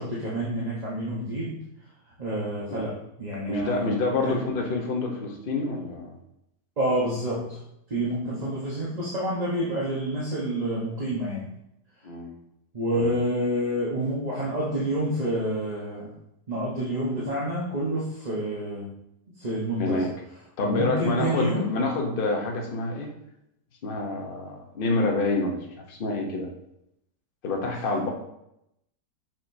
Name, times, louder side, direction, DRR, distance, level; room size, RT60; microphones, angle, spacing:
voice 1, 0.0-1.6 2.2-4.4 6.8-7.6 7.9-11.5 12.7-16.1 16.5-18.9 19.4-20.1 20.6-21.8, right 1 dB, 30° right, -7 dB, 1.1 m, -28 dB
voice 2, 3.5-6.2 12.0-12.3 13.0-13.1 19.8-20.1 20.6-23.1 23.8-26.5 27.4-28.1, left 3 dB, 40° left, 1 dB, 1.0 m, -27 dB
6.6 x 5.9 x 2.7 m, 0.81 s
omnidirectional pair, 1.8 m